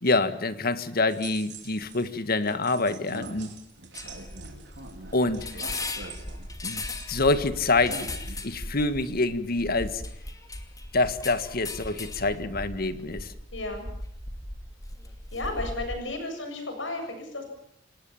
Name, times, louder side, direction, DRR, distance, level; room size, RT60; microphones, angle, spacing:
voice 1, 0.0-3.5 5.1-5.5 6.6-6.8 7.1-8.0 8.4-10.0 10.9-13.3, left 3 dB, 55° left, 12 dB, 1.6 m, -26 dB
sound 1, 1.1-2.1 2.4-7.3 7.5-8.6, right 3 dB, 65° right, 4.6 m, -43 dB
sound 2, 3.9-16.0, left 2 dB, 20° left, 2.5 m, -38 dB
voice 2, 13.5-13.9 15.3-17.4, left 2 dB, 75° left, 5 dB, 7.2 m, -33 dB
28.5 x 18.5 x 7.2 m, 0.69 s
head